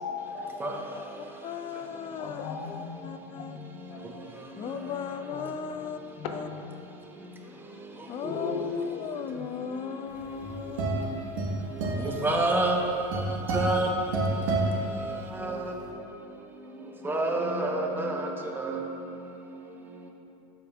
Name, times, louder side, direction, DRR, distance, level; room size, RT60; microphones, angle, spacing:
voice 1, 0.0-1.0 2.2-4.2 5.3-5.5 6.2-6.6 8.2-9.5, left 5 dB, 70° left, 3 dB, 0.9 m, -37 dB
voice 2, 1.2-2.5 3.0-3.6 4.5-6.0 6.3-6.5 8.1-11.3, left 7 dB, 30° left, 10 dB, 0.4 m, -37 dB
sound 1, 10.2-15.6, right 2 dB, 85° right, 1.4 m, -30 dB
voice 3, 12.2-12.8 13.5-13.9 15.4-15.5 17.0-18.3 18.6-18.8, right 2 dB, 10° right, 0 dB, 0.9 m, -26 dB
12.5 x 5.0 x 2.4 m, 2.7 s
supercardioid pair, 120°, 17 cm